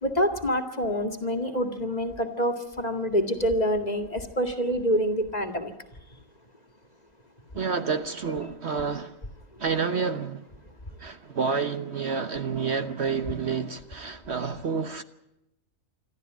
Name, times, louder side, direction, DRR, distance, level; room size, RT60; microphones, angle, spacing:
voice 1, 0.0-5.7, equal, 30° left, 2.2 m, -26 dB
voice 2, 7.5-9.2 9.6-10.4 11.0-15.0, right 5 dB, 55° right, 1.2 m, -29 dB
27.0 x 12.5 x 9.3 m
omnidirectional pair, 1.5 m